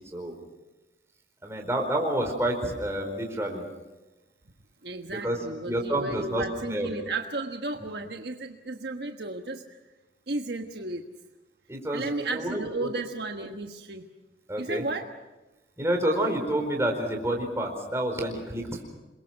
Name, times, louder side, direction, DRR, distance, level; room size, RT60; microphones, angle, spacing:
voice 1, 1.4-3.6 5.1-5.4 5.7-6.9 11.7-12.9 14.5-14.8 15.8-18.8, right 1 dB, 15° right, 2 dB, 4.4 m, -29 dB
voice 2, 4.8-9.6 10.3-11.0 11.9-14.0 14.6-15.1, right 2 dB, 65° right, 4 dB, 1.4 m, -34 dB
28.0 x 22.0 x 6.5 m, 1.1 s
head